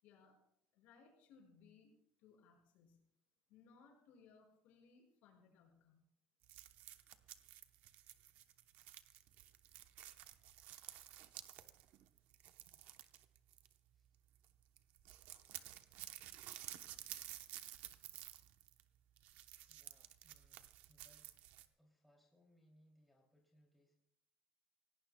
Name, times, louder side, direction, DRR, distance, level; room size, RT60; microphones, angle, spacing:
voice 1, 0.0-0.4 0.7-3.1 3.5-6.0, left 5 dB, 70° left, 1 dB, 5.8 m, -66 dB
sound 1, 6.4-14.1 14.3-14.5 14.8-21.7, right 13 dB, 70° right, 0.9 m, -53 dB
voice 2, 19.7-21.3 21.7-24.0, equal, 5° left, -1 dB, 2.8 m, -72 dB
27.0 x 17.5 x 2.3 m, 0.73 s
cardioid pair, 155°, 3 cm